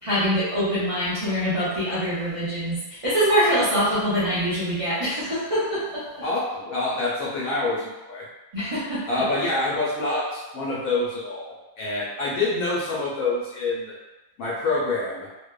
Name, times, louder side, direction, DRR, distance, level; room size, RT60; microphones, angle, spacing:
voice 1, 0.0-6.1 8.5-9.0, equal, 55° right, -11 dB, 0.3 m, -24 dB
voice 2, 6.2-8.3 9.1-13.9 14.4-15.3, left 2 dB, 75° left, -6 dB, 1.0 m, -26 dB
2.6 x 2.2 x 2.2 m, 1.1 s
omnidirectional pair, 1.5 m